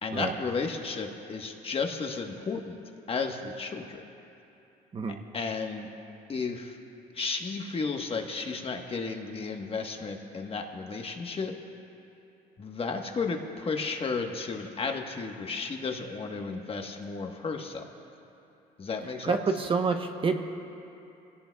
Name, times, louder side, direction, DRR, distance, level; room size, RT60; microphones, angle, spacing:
voice 1, 0.0-2.8 3.1-4.0 5.3-5.9 6.3-6.8 7.1-11.6 12.6-17.9 18.8-19.4, left 4 dB, 35° left, 3 dB, 1.2 m, -33 dB
voice 2, 19.2-20.4, right 4 dB, 30° right, 5 dB, 0.9 m, -27 dB
23.5 x 17.0 x 2.3 m, 2.8 s
cardioid pair, 110°, 17 cm